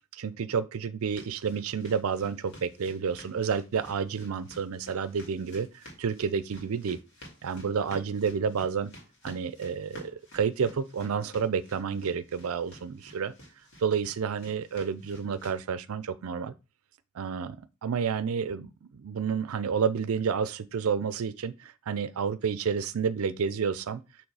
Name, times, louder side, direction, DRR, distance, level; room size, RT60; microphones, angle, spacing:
voice 1, 0.1-7.0 7.4-8.9 9.2-13.3 13.8-16.5 17.1-24.0, right 6 dB, 70° right, 0.4 m, -30 dB
sound 1, 1.0-15.6, equal, 55° left, 2.3 m, -52 dB
6.4 x 3.1 x 4.7 m
head